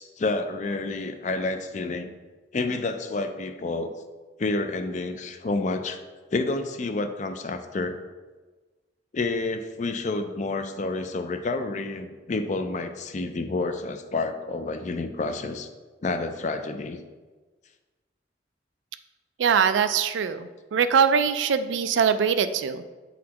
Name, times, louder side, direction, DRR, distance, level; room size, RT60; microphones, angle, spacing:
voice 1, 0.0-2.1 2.5-3.9 4.4-6.0 6.3-8.0 9.1-15.7 16.0-17.0, left 3 dB, 40° left, 7 dB, 0.4 m, -29 dB
voice 2, 19.4-22.8, right 6 dB, 85° right, 11 dB, 0.4 m, -22 dB
8.3 x 4.1 x 2.9 m, 1.3 s
head